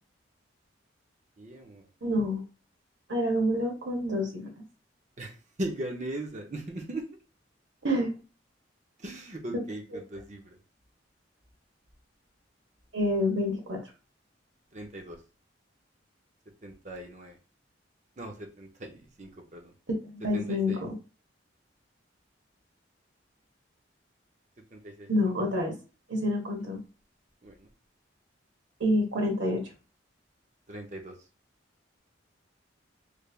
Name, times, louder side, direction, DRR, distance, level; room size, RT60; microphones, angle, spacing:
voice 1, 1.4-1.9 5.2-7.1 9.0-10.6 14.7-15.2 16.6-17.4 18.2-19.7 20.3-20.8 24.7-25.1 27.4-27.7 30.7-31.2, right 1 dB, 40° right, 3 dB, 0.7 m, -39 dB
voice 2, 2.0-2.4 3.1-4.5 7.8-8.1 12.9-13.8 20.1-20.9 25.1-25.7 26.1-26.8 28.8-29.6, left 1 dB, 80° right, 2 dB, 1.2 m, -27 dB
3.3 x 3.2 x 2.4 m, 0.33 s
head